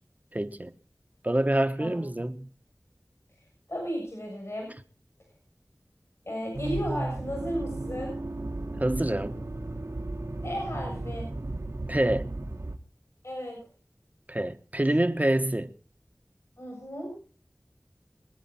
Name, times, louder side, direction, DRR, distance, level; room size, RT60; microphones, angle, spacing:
voice 1, 0.3-0.7 1.2-2.5 8.8-9.4 11.9-12.3 14.3-15.7, right 1 dB, 30° right, 1.3 m, -26 dB
voice 2, 3.7-4.7 6.2-8.1 10.4-11.2 13.2-13.6 16.6-17.1, equal, 60° left, 7.3 m, -34 dB
Accelerating revving vroom, 6.5-12.8, right 2 dB, 60° right, 1.4 m, -35 dB
24.0 x 10.0 x 4.4 m
wide cardioid pair, 40°, 6 cm